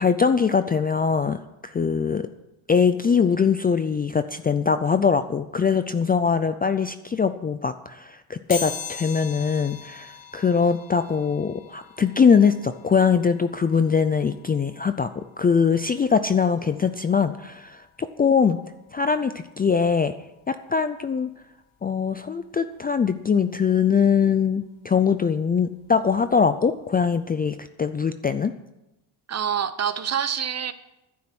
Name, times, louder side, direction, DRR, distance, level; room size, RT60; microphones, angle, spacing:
voice 1, 0.0-2.3 2.7-15.1 15.4-18.6 18.9-20.1 20.5-21.3 21.8-28.5, left 6 dB, 20° left, 0.4 m, -22 dB
sound 1, 8.5-19.2 19.6-19.7 20.9-21.0 21.3-23.4 23.7-26.3 26.7-26.9 27.2-27.3, left 6 dB, 70° left, 5.4 m, -42 dB
voice 2, 29.3-30.7, right 8 dB, 30° right, 0.9 m, -26 dB
12.0 x 10.0 x 7.8 m
cardioid pair, 135°, 49 cm